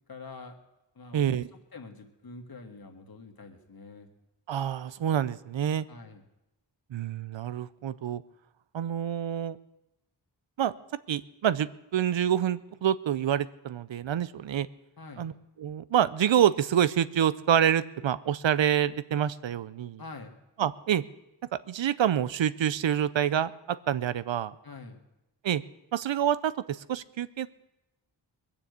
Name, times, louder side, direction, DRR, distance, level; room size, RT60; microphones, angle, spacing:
voice 1, 0.1-0.6 1.0-1.4 1.7-4.1 5.9-6.2 15.0-15.3 20.0-20.4 24.6-25.0, left 3 dB, 55° left, 4 dB, 1.8 m, -45 dB
voice 2, 1.1-1.5 4.5-5.9 6.9-8.2 8.7-9.6 10.6-10.7 11.1-14.7 15.2-15.3 15.6-20.0 20.6-21.0 21.7-24.5 25.4-25.6 25.9-27.5, right 9 dB, 85° right, 16 dB, 0.6 m, -27 dB
21.5 x 7.1 x 8.1 m, 0.92 s
wide cardioid pair, 110°, 44 cm